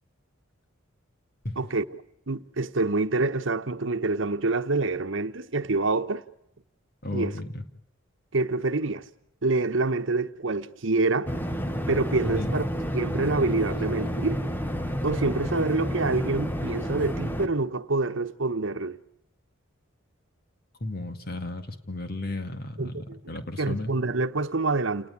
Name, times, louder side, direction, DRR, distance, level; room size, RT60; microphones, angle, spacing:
voice 1, 1.6-2.0 2.3-6.2 7.1-7.3 8.3-9.0 9.4-11.3 11.9-12.7 12.9-14.4 15.0-19.0 22.8-23.2 23.6-25.1, right 3 dB, 70° right, 1.1 m, -26 dB
voice 2, 7.0-7.6 12.2-12.6 20.8-23.9, left 2 dB, 50° left, 2.2 m, -33 dB
sound 1, 11.2-17.5, equal, 10° left, 1.3 m, -30 dB
29.5 x 19.5 x 8.6 m
head